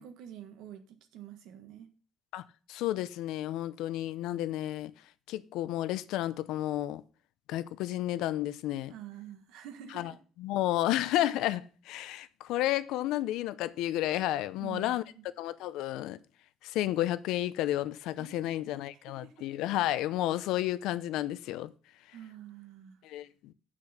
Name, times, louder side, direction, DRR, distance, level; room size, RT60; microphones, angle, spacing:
voice 1, 0.0-1.9 8.9-10.2 14.6-15.3 18.2-18.7 19.1-19.5 22.1-23.0, right 10 dB, 85° right, 1.5 m, -47 dB
voice 2, 2.7-4.9 5.3-7.0 7.5-8.9 9.9-10.1 10.4-15.0 15.4-16.2 16.6-21.7 23.0-23.5, left 14 dB, 85° left, 0.6 m, -31 dB
8.3 x 6.2 x 5.8 m
cardioid pair, 160°, 0 cm